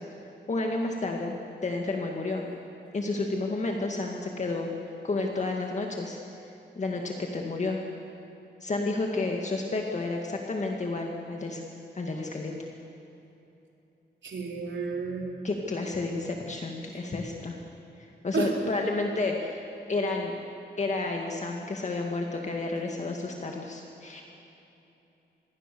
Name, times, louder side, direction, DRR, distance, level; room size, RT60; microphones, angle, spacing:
voice 1, 0.5-1.4 1.6-2.5 2.9-4.7 5.0-6.2 6.7-7.8 8.6-11.6 11.9-12.5 15.4-17.6 18.2-20.3 20.8-24.2, left 3 dB, 40° left, 1 dB, 1.9 m, -31 dB
voice 2, 14.2-15.3 18.3-18.5, right 5 dB, 85° right, 0 dB, 3.9 m, -31 dB
27.0 x 21.5 x 6.9 m, 3.0 s
wide cardioid pair, 160°, 19 cm